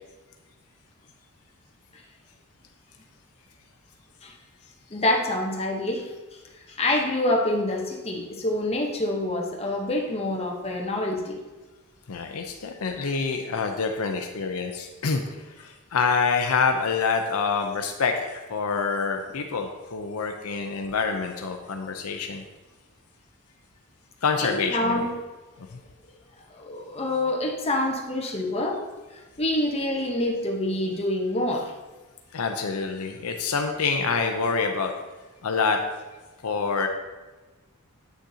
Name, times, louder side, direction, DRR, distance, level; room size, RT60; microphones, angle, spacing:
voice 1, 4.9-6.1 6.7-11.4 24.4-25.1 26.5-28.8 29.1-31.7, left 1 dB, 30° left, 0 dB, 1.0 m, -26 dB
voice 2, 12.1-22.4 24.2-25.1 25.6-25.8 32.3-34.9 35.4-35.8 36.4-36.9, left 5 dB, 70° left, 4 dB, 0.6 m, -26 dB
8.4 x 6.3 x 2.8 m, 1.2 s
head